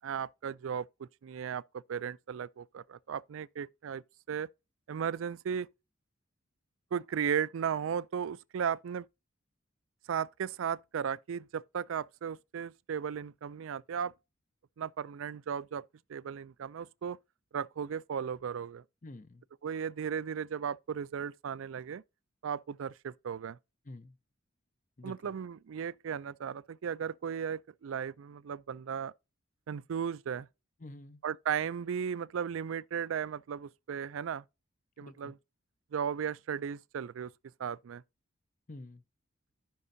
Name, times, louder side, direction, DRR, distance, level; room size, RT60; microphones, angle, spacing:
voice 1, 0.0-4.5 4.9-5.7 6.9-9.1 10.1-14.1 14.8-15.8 16.1-17.2 17.5-18.8 19.6-22.0 22.4-23.6 25.0-29.1 29.7-30.5 31.2-34.4 35.0-35.3 35.9-37.3 37.6-38.0, right 7 dB, 85° right, 0.4 m, -36 dB
voice 2, 19.0-19.4 23.9-24.1 25.0-25.3 30.8-31.2 35.0-35.3 38.7-39.0, left 2 dB, 40° left, 0.8 m, -48 dB
15.0 x 5.3 x 2.7 m
head